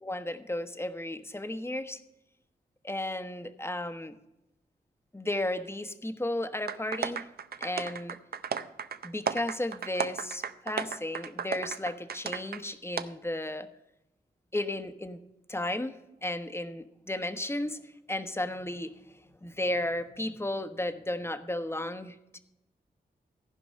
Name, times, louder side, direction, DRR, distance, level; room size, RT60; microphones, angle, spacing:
voice 1, 0.0-2.0 2.8-4.2 5.1-7.3 7.6-8.2 9.0-13.7 14.5-15.2 15.5-17.8 18.1-18.9 19.4-22.4, left 1 dB, 15° left, 10 dB, 1.0 m, -34 dB
sound 1, 6.7-12.6 13.0-13.1, right 7 dB, 65° right, 0.6 m, -34 dB
14.5 x 5.2 x 6.5 m, 0.89 s
cardioid pair, 60°, 17 cm